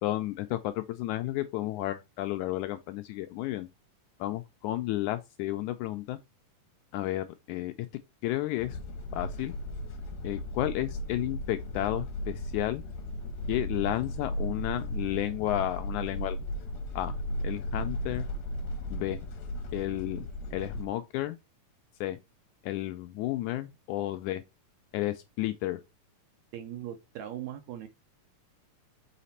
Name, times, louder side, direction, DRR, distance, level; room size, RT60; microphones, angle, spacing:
voice 1, 0.0-3.7 4.2-6.2 6.9-7.9 8.2-8.8 9.1-9.5 10.2-12.8 13.5-16.4 16.9-17.1 17.4-18.3 18.9-19.2 19.7-20.2 20.5-21.4 22.0-22.2 22.6-24.4 24.9-25.8, left 15 dB, 80° left, 1.8 m, -32 dB
sound 1, 8.6-20.9, equal, 65° left, 2.2 m, -36 dB
voice 2, 26.5-27.9, right 11 dB, 75° right, 1.8 m, -39 dB
5.7 x 4.1 x 4.1 m
omnidirectional pair, 3.8 m